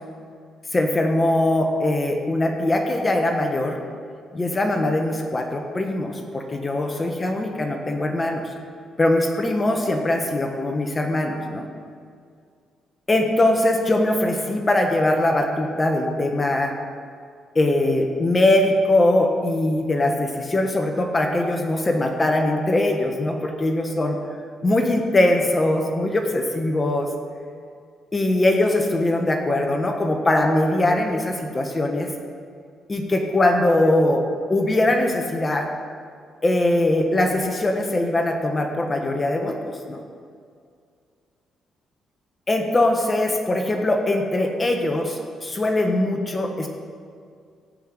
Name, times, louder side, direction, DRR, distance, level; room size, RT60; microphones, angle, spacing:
voice 1, 0.7-3.8 4.3-8.5 9.0-11.7 13.1-16.8 17.5-24.2 24.6-27.1 28.1-32.1 32.9-35.7 36.4-40.0 42.5-46.7, left 1 dB, 25° left, 3 dB, 1.4 m, -21 dB
16.5 x 5.8 x 8.1 m, 2.2 s
cardioid pair, 90°, 0 cm